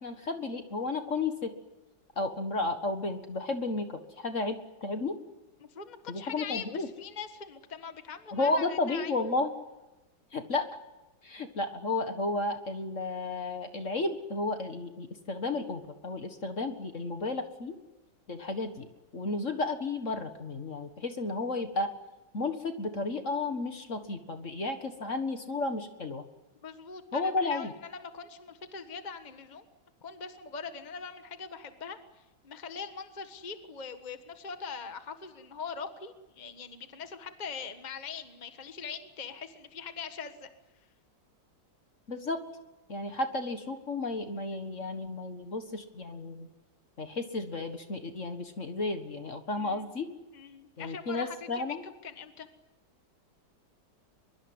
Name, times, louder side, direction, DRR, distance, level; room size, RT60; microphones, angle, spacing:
voice 1, 0.0-1.5 2.2-5.2 6.1-6.9 8.3-9.5 10.3-10.7 11.2-17.8 18.3-18.9 19.1-21.9 22.3-26.2 27.1-27.7 42.1-42.4 42.9-46.5 47.0-50.1 50.8-51.8, left 3 dB, 40° left, 7 dB, 1.9 m, -33 dB
voice 2, 5.6-9.1 26.6-29.6 30.0-40.5 49.6-49.9 50.3-51.8 52.0-52.5, left 6 dB, 25° left, 8 dB, 1.5 m, -42 dB
23.5 x 22.5 x 9.7 m, 1.0 s
omnidirectional pair, 2.1 m